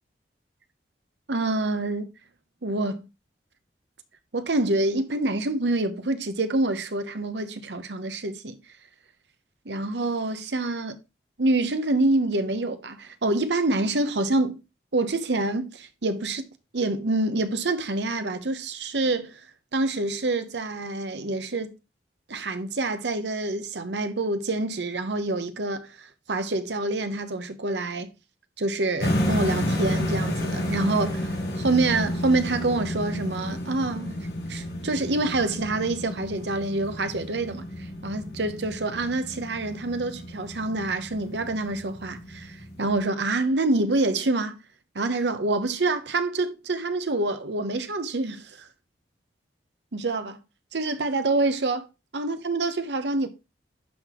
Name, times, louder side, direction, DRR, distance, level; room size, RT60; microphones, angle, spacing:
voice 1, 1.3-2.1 2.6-3.1 4.3-8.6 9.7-11.0 11.4-14.6 14.9-16.4 16.7-19.4 19.7-21.7 22.3-28.1 28.6-34.2 34.5-37.6 38.0-44.6 44.9-48.7 49.9-50.4 50.7-51.9 52.1-53.3, right 2 dB, 80° right, 0.9 m, -26 dB
sound 1, 29.0-43.0, left 1 dB, 60° left, 1.9 m, -31 dB
11.5 x 4.0 x 3.0 m
head